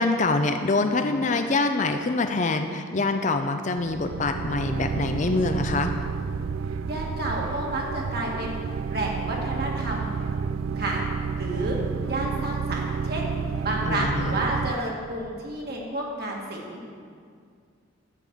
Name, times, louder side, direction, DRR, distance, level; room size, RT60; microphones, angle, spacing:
voice 1, 0.0-6.0 13.8-14.3, left 3 dB, 35° left, 7 dB, 0.5 m, -25 dB
sound 1, 3.8-14.7, right 5 dB, 85° right, 0.3 m, -30 dB
voice 2, 6.8-8.6 8.9-10.1 10.7-11.0 11.4-11.8 12.1-13.3 13.6-16.8, right 1 dB, 50° right, -1 dB, 1.9 m, -30 dB
12.0 x 5.3 x 7.7 m, 2.2 s
head